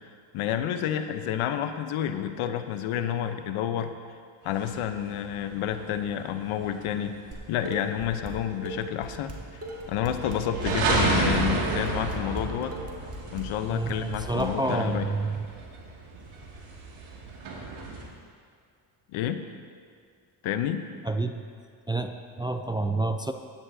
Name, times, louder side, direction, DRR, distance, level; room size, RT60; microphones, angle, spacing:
voice 1, 0.3-4.0 4.4-7.2 7.5-9.4 9.9-12.7 13.3-15.1 19.1-19.4 20.4-20.8, left 10 dB, 80° left, 9 dB, 0.9 m, -29 dB
sound 1, 4.7-18.0, right 3 dB, 75° right, 2.3 m, -32 dB
Dishes pots and pans, 7.3-8.3 8.6-14.4, right 2 dB, 30° right, 2.0 m, -39 dB
voice 2, 13.7-15.4 21.0-21.4 21.9-23.3, right 2 dB, 10° right, 6 dB, 0.4 m, -28 dB
16.5 x 10.5 x 2.7 m, 2.1 s
cardioid pair, 85°, 49 cm